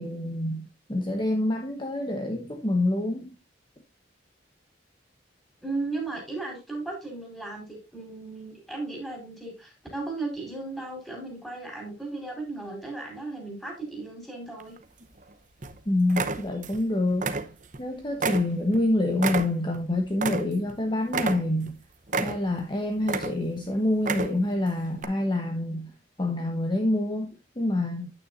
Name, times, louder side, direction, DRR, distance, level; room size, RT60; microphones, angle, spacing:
voice 1, 0.0-3.3 15.9-17.3 17.8-21.8 22.2-25.9 26.2-28.1, left 1 dB, 25° left, 1.0 m, -27 dB
voice 2, 5.6-14.7, right 3 dB, ahead, 4.4 m, -35 dB
sound 1, 14.6-15.2 15.6-15.8 16.1-16.8 17.1-17.8 18.2-20.8 21.1-21.7 22.1-22.7 23.0-23.6 24.0-24.5 25.0-25.1, right 4 dB, 45° right, 0.9 m, -30 dB
9.6 x 8.9 x 2.6 m
head